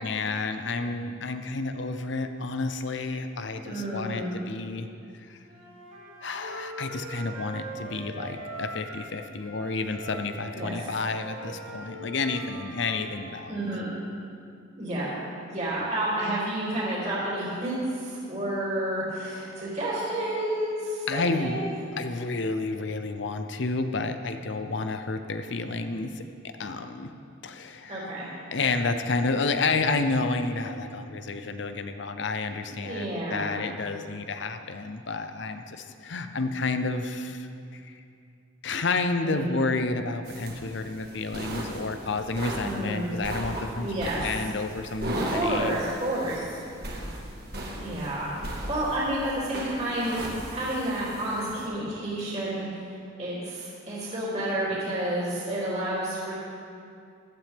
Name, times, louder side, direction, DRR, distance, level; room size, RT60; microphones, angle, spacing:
voice 1, 0.0-4.9 5.1-5.4 6.2-13.6 21.1-21.6 21.9-26.2 26.6-27.1 27.4-28.1 28.5-38.0 38.6-45.8, left 3 dB, 60° left, 8 dB, 0.6 m, -30 dB
voice 2, 3.6-4.3 10.5-10.8 13.5-13.9 14.8-15.2 15.5-21.7 27.9-28.3 32.8-33.5 39.2-39.6 42.6-43.1 43.8-44.3 45.3-46.6 47.8-56.3, right 1 dB, 35° right, -8 dB, 2.9 m, -30 dB
Wind instrument woodwind instrument, 5.4-9.1 9.4-13.4, right 2 dB, 75° right, 3.7 m, -42 dB
sound 1, 40.3-51.7, right 1 dB, 50° right, 1.7 m, -37 dB
15.5 x 12.0 x 3.5 m, 2.4 s
head